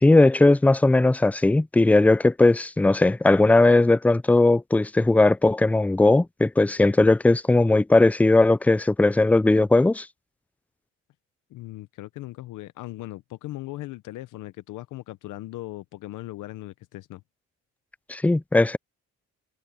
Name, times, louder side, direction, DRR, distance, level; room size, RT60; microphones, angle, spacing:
voice 1, 0.0-10.1 18.1-18.8, left 2 dB, 5° left, 0.4 m, -18 dB
voice 2, 11.5-17.2, left 17 dB, 85° left, 0.8 m, -38 dB
cardioid pair, 90°, 30 cm